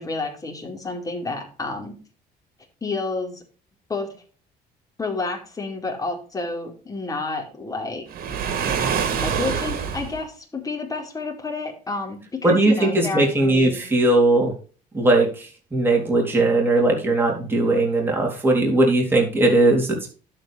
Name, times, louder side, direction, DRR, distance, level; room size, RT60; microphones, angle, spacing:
voice 1, 0.0-1.9 2.8-3.4 3.9-4.1 5.0-8.1 9.1-13.8, left 3 dB, 20° left, 0 dB, 4.6 m, -30 dB
Waves surf, 8.1-10.2, right 7 dB, 60° right, 2.8 m, -25 dB
voice 2, 12.4-14.5 14.9-20.1, right 2 dB, 15° right, -1 dB, 3.5 m, -19 dB
11.5 x 9.1 x 3.4 m, 0.37 s
cardioid pair, 110°, 17 cm